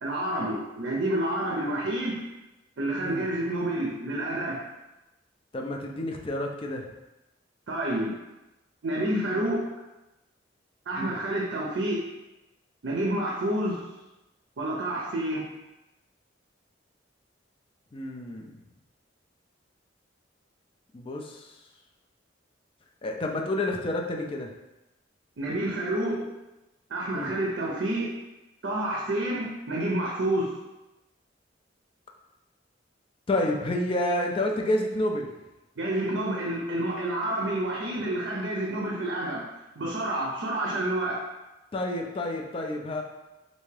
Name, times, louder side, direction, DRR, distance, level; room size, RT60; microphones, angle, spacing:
voice 1, 0.0-2.2 2.8-4.6 7.7-8.1 8.8-9.7 10.9-12.0 12.8-13.9 14.6-15.5 25.4-26.4 26.9-28.1 28.6-30.6 35.8-39.5 39.8-41.2, right 1 dB, 70° right, -2 dB, 0.5 m, -29 dB
voice 2, 5.5-6.8 11.0-11.1 17.9-18.6 20.9-21.5 23.0-24.5 27.1-27.3 33.3-35.3 41.7-43.0, left 1 dB, 30° left, 2 dB, 0.3 m, -29 dB
3.4 x 2.6 x 3.2 m, 1.0 s
head